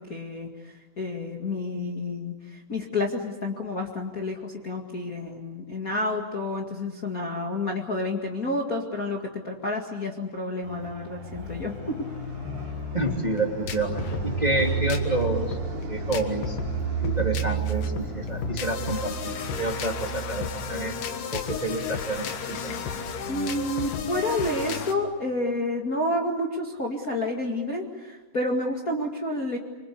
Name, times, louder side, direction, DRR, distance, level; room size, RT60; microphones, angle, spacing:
voice 1, 0.0-12.0 23.3-29.6, left 2 dB, 90° left, -1 dB, 0.7 m, -30 dB
Fixed-wing aircraft airplane, 10.6-24.1, right 9 dB, 45° right, 4.0 m, -34 dB
sound 1, 11.3-24.9, left 6 dB, 60° left, 2.5 m, -34 dB
voice 2, 12.9-15.6 15.9-16.6 17.0-20.9 21.3-22.8, right 2 dB, 15° right, 1 dB, 1.6 m, -29 dB
27.5 x 25.5 x 8.4 m, 1.2 s
omnidirectional pair, 5.6 m